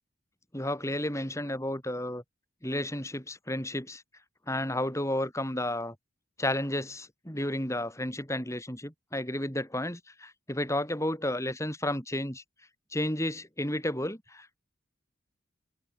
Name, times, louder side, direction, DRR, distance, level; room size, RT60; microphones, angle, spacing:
voice 1, 0.5-2.2 2.6-4.0 4.5-6.0 6.4-12.4 12.9-14.6, left 1 dB, 15° left, 7.6 m, -32 dB
head